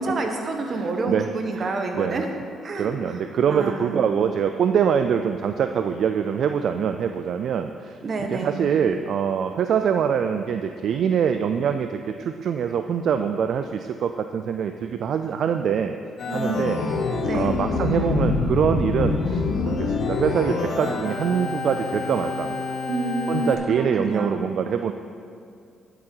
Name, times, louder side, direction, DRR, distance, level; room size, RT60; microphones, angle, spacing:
voice 1, 0.0-2.3 2.6-3.2 3.5-4.0 8.0-8.5 16.3-16.9 17.2-17.6 22.9-24.4, right 2 dB, 45° right, 4 dB, 1.3 m, -28 dB
voice 2, 0.6-1.3 1.5-2.2 2.8-8.0 8.3-16.0 16.3-16.8 17.3-22.7 23.3-24.9, right 7 dB, 65° right, 8 dB, 0.4 m, -24 dB
Organ, 16.2-23.5, left 4 dB, 65° left, 1.2 m, -26 dB
10.5 x 7.9 x 4.6 m, 2.4 s
cardioid pair, 90°, 0 cm